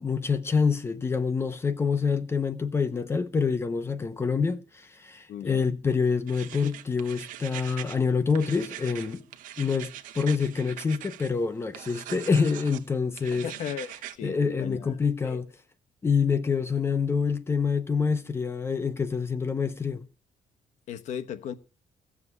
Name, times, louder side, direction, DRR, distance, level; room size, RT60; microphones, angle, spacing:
voice 1, 0.0-9.2 9.6-13.5 14.2-15.5 16.0-20.1, left 5 dB, 20° left, 0.7 m, -26 dB
voice 2, 5.3-5.7 13.3-14.9 15.2-15.4 20.9-21.5, left 8 dB, 60° left, 1.1 m, -36 dB
sound 1, 6.3-8.0 8.3-11.3 11.7-12.8 13.2-14.2, right 13 dB, 80° right, 1.0 m, -42 dB
16.0 x 7.2 x 9.6 m
cardioid pair, 175°, 13 cm